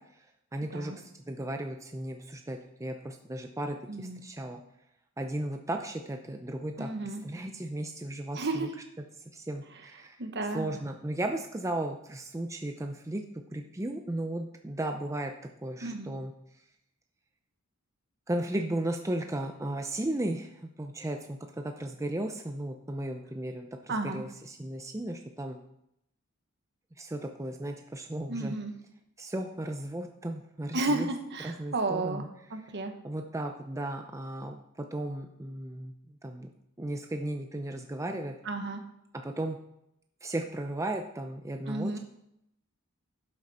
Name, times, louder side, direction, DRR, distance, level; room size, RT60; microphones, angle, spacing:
voice 1, 0.5-0.9 1.3-4.6 5.2-8.7 9.3-10.2 10.5-13.2 13.5-15.3 15.6-16.3 18.3-25.6 27.0-28.6 29.2-31.1 31.4-32.3 33.0-36.5 36.8-38.3 39.2-39.6 40.2-42.0, right 1 dB, 15° right, 4 dB, 0.6 m, -35 dB
voice 2, 3.9-4.2 6.8-7.2 8.3-8.8 10.2-10.7 15.8-16.1 23.9-24.2 28.3-28.7 30.7-32.2 32.5-32.9 38.4-38.8 41.7-42.0, right 2 dB, 55° right, 6 dB, 1.3 m, -32 dB
12.5 x 7.7 x 4.2 m, 0.80 s
head